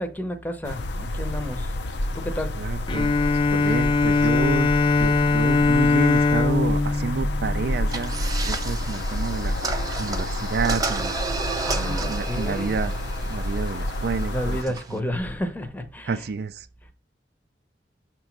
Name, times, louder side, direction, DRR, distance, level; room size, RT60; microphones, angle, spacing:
voice 1, 0.0-1.7 2.1-2.5 11.6-12.7 14.3-16.1, equal, 10° left, 0.7 m, -31 dB
sound 1, 0.6-14.6, left 1 dB, 75° left, 0.6 m, -29 dB
voice 2, 2.5-4.7 5.0-8.1 8.4-9.6 10.0-11.1 11.7-13.0 13.3-14.6 14.9-15.0 16.1-16.7, right 4 dB, 60° right, 0.4 m, -29 dB
Bowed string instrument, 2.9-8.4, left 3 dB, 30° left, 0.4 m, -21 dB
sound 2, 7.9-15.0, right 3 dB, 20° right, 0.6 m, -33 dB
6.4 x 3.0 x 5.8 m
head